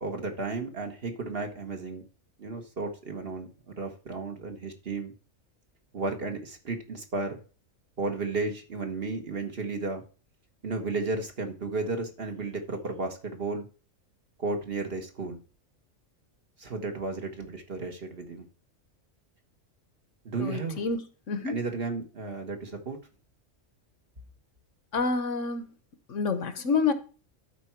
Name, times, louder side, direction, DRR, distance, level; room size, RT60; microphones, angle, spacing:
voice 1, 0.0-2.0 2.4-3.5 3.8-5.1 5.9-7.4 8.0-10.0 10.6-13.6 14.4-15.4 16.6-18.4 20.2-20.8 21.4-23.0, right 3 dB, 45° right, 4 dB, 1.6 m, -33 dB
voice 2, 20.4-21.0 21.3-21.6 24.9-25.7 26.1-26.9, left 4 dB, 70° left, 11 dB, 1.3 m, -28 dB
12.0 x 4.6 x 4.5 m, 0.35 s
omnidirectional pair, 1.4 m